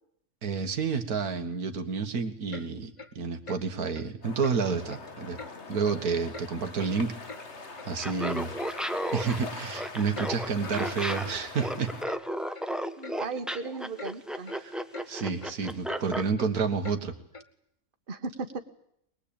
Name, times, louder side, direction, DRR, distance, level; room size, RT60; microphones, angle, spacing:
voice 1, 0.4-5.4 5.7-7.1 7.8-8.5 9.1-11.9 14.6-14.8 15.1-17.1, right 5 dB, 85° right, 7 dB, 2.1 m, -30 dB
Clock, 2.5-2.7 3.0-3.1 3.4-3.6 3.9-4.1 4.4-4.6 4.9-5.0 5.4-5.5 5.8-6.0 6.3-6.5 6.8-7.4 7.8-7.9 8.2-8.4 8.7-8.9 9.2-9.3 9.7-9.8 10.1-10.3 10.6-10.8 11.1-11.3 11.6-11.7 12.0-12.2 12.5-12.6 13.0-13.2 13.5-13.7 14.0-14.1 14.5-14.6 14.9-15.1 15.4-15.5 15.9-16.0 16.4-16.5 16.8-17.0 17.3-17.5, left 3 dB, 25° left, 0.9 m, -44 dB
sound 1, 4.2-12.1, left 3 dB, 50° left, 2.1 m, -43 dB
Laughter, 8.0-16.3, equal, ahead, 0.9 m, -34 dB
voice 2, 13.0-14.5 18.1-18.6, right 4 dB, 35° right, 8 dB, 1.5 m, -36 dB
22.5 x 21.0 x 8.7 m, 0.73 s
omnidirectional pair, 1.5 m